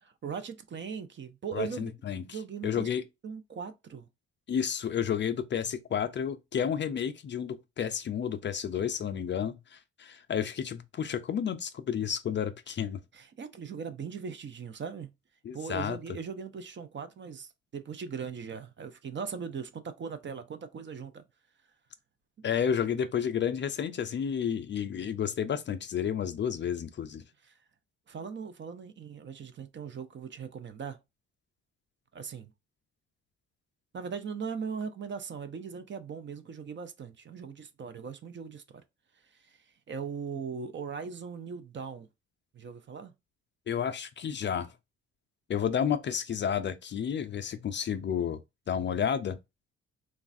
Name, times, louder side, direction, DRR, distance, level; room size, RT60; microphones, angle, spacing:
voice 1, 0.0-1.9 2.3-2.9 3.2-4.1 13.1-15.1 15.5-21.2 28.1-31.0 32.1-32.5 33.9-38.8 39.4-39.6 39.9-42.1 42.5-43.1, right 6 dB, 40° right, 0.5 m, -39 dB
voice 2, 1.5-3.0 4.5-13.0 15.4-16.0 22.4-27.2 43.7-44.7 45.5-48.4 48.7-49.4, left 8 dB, 40° left, 0.4 m, -31 dB
3.1 x 2.3 x 2.5 m
cardioid pair, 90°, 30 cm